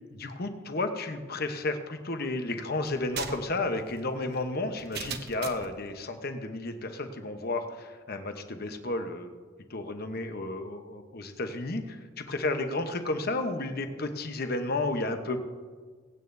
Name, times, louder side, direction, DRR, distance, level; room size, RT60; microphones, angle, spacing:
voice 1, 0.1-9.3 9.7-15.4, left 2 dB, 50° left, 7 dB, 1.0 m, -32 dB
sound 1, 2.9-5.8, right 7 dB, 50° right, 0.9 m, -40 dB
23.0 x 9.0 x 2.7 m, 1.5 s
head